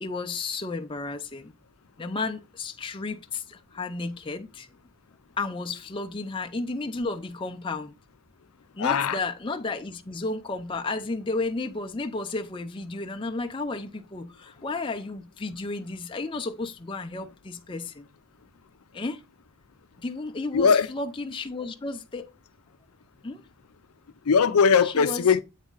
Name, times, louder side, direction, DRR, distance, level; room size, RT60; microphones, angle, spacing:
voice 1, 0.0-1.5 2.0-4.7 5.4-7.9 8.7-18.1 18.9-19.2 20.0-22.3 23.2-23.4 24.8-25.3, left 3 dB, 20° left, 0.5 m, -33 dB
voice 2, 8.8-9.2 20.5-20.9 24.3-25.4, left 6 dB, 85° left, 0.5 m, -20 dB
8.1 x 4.1 x 3.8 m
head